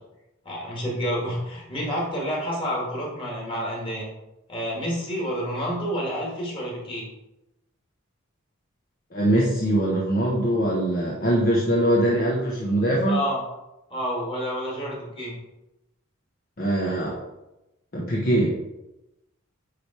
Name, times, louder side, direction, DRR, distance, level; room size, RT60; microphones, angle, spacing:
voice 1, 0.4-4.1 4.5-7.1 13.1-13.4 13.9-15.3, equal, 25° left, -4 dB, 2.3 m, -29 dB
voice 2, 9.1-13.2 16.6-17.2 17.9-18.5, right 1 dB, 45° left, -5 dB, 1.1 m, -22 dB
9.0 x 3.4 x 4.5 m, 0.95 s
head